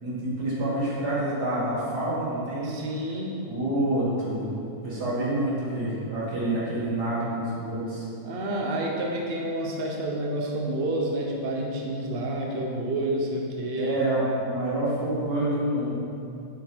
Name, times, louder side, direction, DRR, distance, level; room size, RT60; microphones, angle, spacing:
voice 1, 0.0-2.7 3.5-4.5 4.8-8.1 13.8-15.9, right 1 dB, 75° right, -7 dB, 2.3 m, -27 dB
voice 2, 2.6-3.4 8.2-14.0, right 1 dB, 50° right, -1 dB, 0.7 m, -29 dB
7.4 x 4.1 x 4.4 m, 2.6 s
omnidirectional pair, 1.8 m